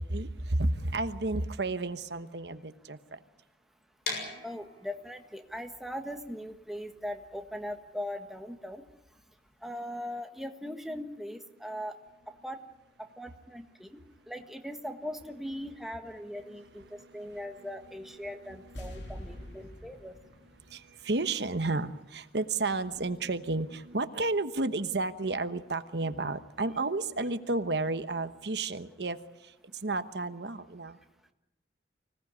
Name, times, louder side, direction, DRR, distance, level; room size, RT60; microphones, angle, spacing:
voice 1, 0.0-3.2 16.5-17.4 18.8-19.6 20.7-31.0, right 2 dB, 70° right, 10 dB, 1.2 m, -32 dB
sound 1, 4.0-9.8, left 3 dB, 60° left, 7.2 m, -42 dB
voice 2, 4.4-8.8 9.6-12.0 12.4-12.6 13.0-14.0 14.3-16.8 17.1-20.1, equal, ahead, 5 dB, 1.5 m, -40 dB
sound 2, 18.7-22.0 22.2-22.3, equal, 90° left, 3.7 m, -46 dB
25.0 x 17.5 x 9.6 m, 0.94 s
head